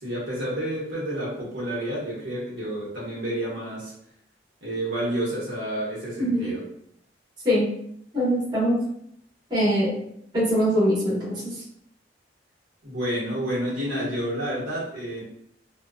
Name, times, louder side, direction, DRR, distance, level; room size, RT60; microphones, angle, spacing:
voice 1, 0.0-3.9 4.6-6.6 12.8-15.2, right 1 dB, 70° right, -7 dB, 1.2 m, -29 dB
voice 2, 8.1-8.8 9.5-10.0 10.3-11.6, equal, 25° right, -8 dB, 1.1 m, -22 dB
2.9 x 2.2 x 2.5 m, 0.70 s
head